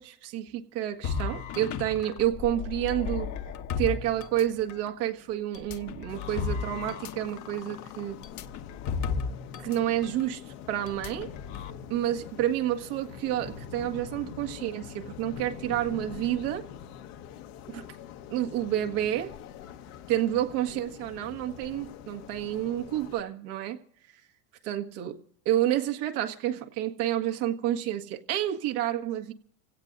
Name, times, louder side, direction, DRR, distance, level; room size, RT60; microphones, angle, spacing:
voice 1, 0.0-3.3 3.8-8.2 9.6-10.4 10.7-11.3 11.9-16.7 17.7-17.8 18.3-19.3 20.1-23.8 24.6-25.2 25.4-29.3, right 12 dB, 75° right, 1.8 m, -29 dB
sound 1, 1.0-4.9 5.5-9.8 10.0-10.2 10.9-11.7, left 6 dB, 40° left, 1.1 m, -34 dB
sound 2, 6.1-23.2, left 8 dB, 70° left, 1.5 m, -44 dB
27.5 x 17.0 x 2.7 m
supercardioid pair, 110°, 46 cm